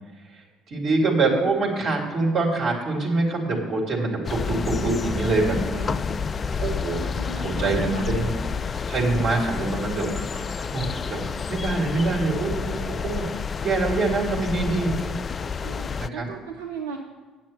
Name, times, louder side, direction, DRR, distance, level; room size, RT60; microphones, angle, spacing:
voice 1, 0.7-5.9 6.6-7.0 7.4-8.3 8.9-10.5 10.7-11.2 11.5-13.3 13.6-14.9 16.0-16.3, right 3 dB, 45° right, -1 dB, 2.6 m, -25 dB
sound 1, 4.2-16.1, left 5 dB, 30° left, 0.3 m, -29 dB
voice 2, 7.2-8.2 15.6-17.0, right 4 dB, 70° right, 2 dB, 0.7 m, -35 dB
8.7 x 7.4 x 6.8 m, 1.3 s
figure-of-eight pair, 55°, 0 cm